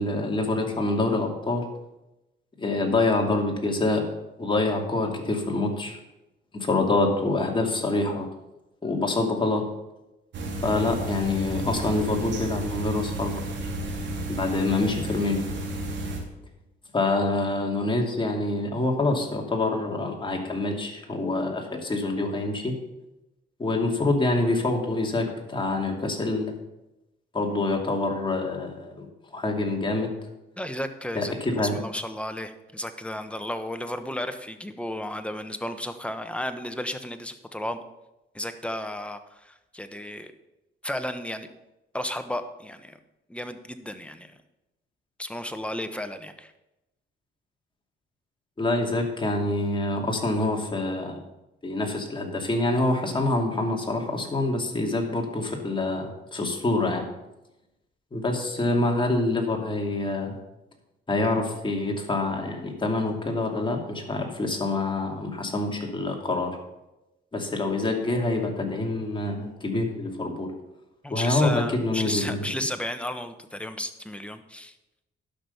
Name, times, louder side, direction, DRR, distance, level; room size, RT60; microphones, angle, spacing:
voice 1, 0.0-1.6 2.6-4.0 4.4-6.0 6.5-8.3 8.8-9.6 10.6-13.4 14.3-15.4 16.9-22.7 23.6-26.5 27.3-29.1 29.3-30.1 31.1-31.8 48.6-51.2 51.6-57.1 58.1-60.3 61.1-66.5 67.3-70.5 71.1-72.5, left 2 dB, 25° left, 2 dB, 2.5 m, -26 dB
sound 1, 10.3-16.2, right 1 dB, 65° right, 2.5 m, -32 dB
voice 2, 30.6-31.3 31.6-37.8 38.3-40.3 40.8-41.5 41.9-43.0 43.3-44.3 45.2-46.5 71.0-74.7, left 1 dB, 5° left, 9 dB, 1.1 m, -33 dB
11.5 x 6.2 x 7.0 m, 0.95 s
cardioid pair, 90°, 20 cm